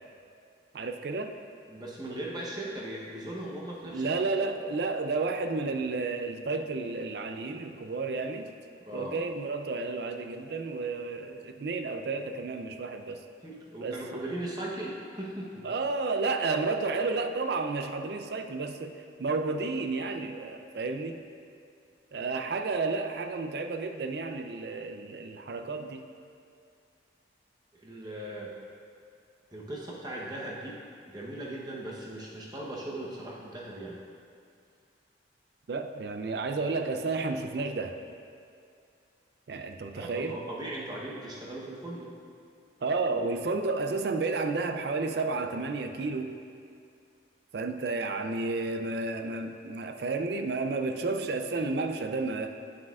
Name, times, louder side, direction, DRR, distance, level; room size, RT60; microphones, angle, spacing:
voice 1, 0.7-1.3 3.8-8.5 8.9-13.2 13.8-14.2 15.6-21.2 22.1-26.0 35.7-38.0 39.5-40.4 42.8-46.3 47.5-52.5, right 3 dB, 60° right, 6 dB, 0.4 m, -31 dB
voice 2, 1.7-4.8 8.8-9.2 13.4-15.7 27.7-28.5 29.5-30.8 31.1-34.0 39.9-42.1, right 1 dB, 20° right, -4 dB, 0.9 m, -39 dB
8.6 x 7.4 x 2.4 m, 2.4 s
head